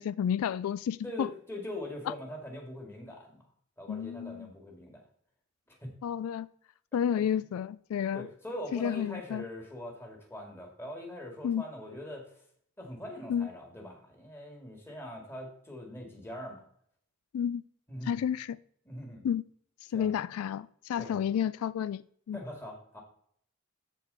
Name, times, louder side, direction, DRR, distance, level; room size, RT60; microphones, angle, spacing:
voice 1, 0.0-1.3 3.9-4.5 6.0-6.5 6.9-8.3 8.7-9.4 11.4-11.6 13.3-13.5 17.3-17.6 18.1-18.6 19.2-19.4 19.9-22.0 22.3-22.4, left 8 dB, 90° left, 17 dB, 0.3 m, -31 dB
voice 2, 1.0-3.4 3.8-5.0 5.7-5.9 7.1-7.2 8.1-12.3 12.8-16.6 17.9-18.2 18.9-19.2 19.9-20.1 21.0-21.3 22.3-23.0, left 1 dB, 10° left, 1 dB, 2.0 m, -42 dB
13.0 x 4.4 x 4.0 m, 0.63 s
head